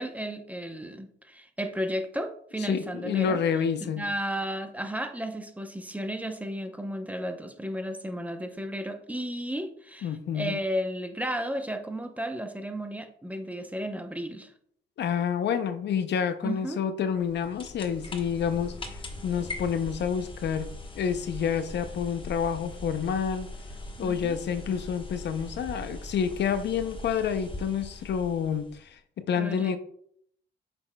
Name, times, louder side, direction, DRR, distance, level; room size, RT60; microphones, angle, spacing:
voice 1, 0.0-3.4 4.0-14.5 16.4-16.8 24.0-24.4 29.4-29.8, equal, 5° right, 6 dB, 0.7 m, -33 dB
voice 2, 2.7-4.0 10.0-10.6 15.0-18.8 19.2-20.7 20.9-23.5 24.0-29.8, left 7 dB, 60° left, 10 dB, 0.6 m, -28 dB
sound 1, 17.1-28.9, left 1 dB, 25° left, 1.1 m, -41 dB
7.6 x 5.9 x 2.2 m, 0.66 s
cardioid pair, 90°, 20 cm